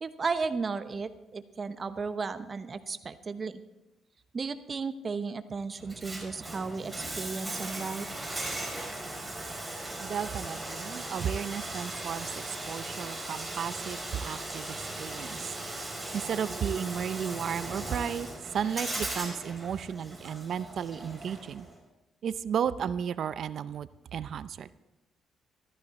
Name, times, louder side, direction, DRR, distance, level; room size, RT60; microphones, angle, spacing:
voice 1, 0.0-3.6 4.3-8.1, right 4 dB, 35° right, 11 dB, 0.9 m, -34 dB
Bathtub (filling or washing), 5.8-21.7, right 1 dB, 10° right, 5.0 m, -38 dB
voice 2, 10.0-15.5 16.1-18.3 18.5-21.7 22.2-24.7, right 8 dB, 65° right, 15 dB, 0.5 m, -34 dB
13.5 x 13.5 x 4.2 m, 0.97 s
cardioid pair, 90°, 0 cm